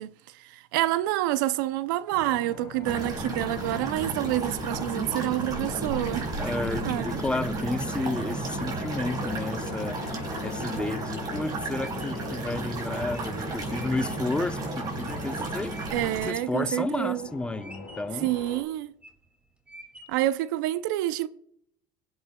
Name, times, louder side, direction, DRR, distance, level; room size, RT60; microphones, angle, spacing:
voice 1, 0.0-6.3 6.9-7.2 15.9-17.3 18.2-18.9 20.1-21.3, right 15 dB, 85° right, 0.4 m, -28 dB
sound 1, 2.1-18.6, left 5 dB, 90° left, 1.6 m, -44 dB
sound 2, 2.8-16.3, right 2 dB, 40° right, 5.0 m, -33 dB
voice 2, 6.4-10.0 10.4-15.7 16.2-18.3, left 2 dB, 10° left, 0.7 m, -32 dB
sound 3, 11.8-16.3 16.8-17.3 17.6-18.3 18.8-19.3 19.7-20.4, right 1 dB, 10° right, 2.2 m, -49 dB
22.0 x 8.1 x 2.2 m
supercardioid pair, 95°, 10 cm